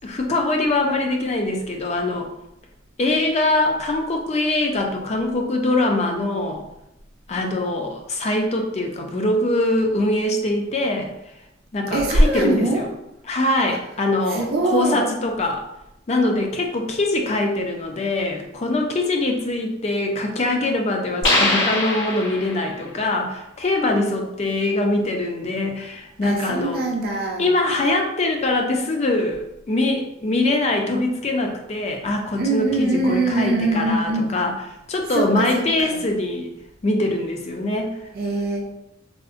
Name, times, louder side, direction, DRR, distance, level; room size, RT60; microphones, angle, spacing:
voice 1, 0.0-2.3 3.0-6.6 7.3-11.1 11.7-12.8 13.3-14.5 14.7-15.6 16.1-26.8 27.4-34.5 34.9-36.5 36.8-38.0, left 2 dB, 30° left, 3 dB, 0.3 m, -23 dB
voice 2, 11.9-12.8 13.7-13.8 14.3-15.0 26.2-27.5 32.4-34.3 35.1-36.0 38.1-38.6, right 2 dB, 45° right, -1 dB, 0.5 m, -22 dB
sound 1, 21.2-22.8, left 2 dB, 65° left, 0.8 m, -22 dB
3.6 x 2.1 x 2.4 m, 0.87 s
head